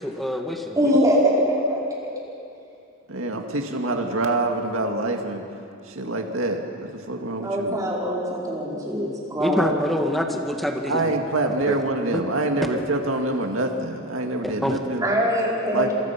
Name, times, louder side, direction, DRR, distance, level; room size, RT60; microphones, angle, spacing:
voice 1, 0.0-1.0 9.4-11.0 11.7-11.8 12.1-12.2 14.4-14.8, equal, ahead, 3 dB, 1.8 m, -26 dB
voice 2, 0.7-1.8 7.4-9.7 15.0-15.9, equal, 15° right, -4 dB, 4.7 m, -22 dB
voice 3, 3.1-5.4 5.8-7.8 10.9-15.1 15.7-15.9, right 2 dB, 80° right, 3 dB, 2.1 m, -26 dB
26.0 x 24.5 x 6.0 m, 2.5 s
head